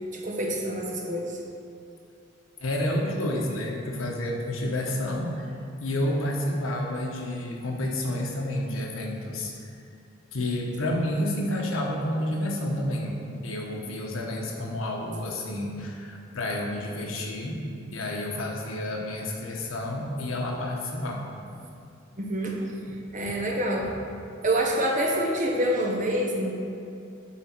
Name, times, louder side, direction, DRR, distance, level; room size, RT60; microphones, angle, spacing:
voice 1, 0.1-1.4 22.2-23.9 24.4-26.5, right 1 dB, 40° right, 0 dB, 1.0 m, -27 dB
voice 2, 2.6-9.8 10.3-17.6 17.9-21.2, left 1 dB, 85° left, 0 dB, 1.2 m, -30 dB
8.6 x 4.1 x 6.0 m, 2.6 s
head